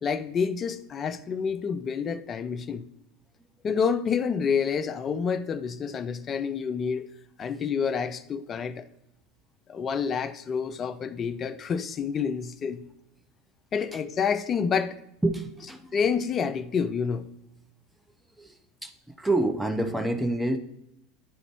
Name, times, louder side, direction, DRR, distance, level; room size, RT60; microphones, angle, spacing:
voice 1, 0.0-2.8 3.6-7.1 7.4-8.9 9.7-12.8 13.7-15.0 15.9-17.3, left 6 dB, 35° left, 0.5 m, -28 dB
voice 2, 15.2-15.9 18.4-18.9 19.2-20.6, right 2 dB, 5° right, 0.6 m, -27 dB
10.0 x 3.9 x 3.1 m
hypercardioid pair, 85°, 0 cm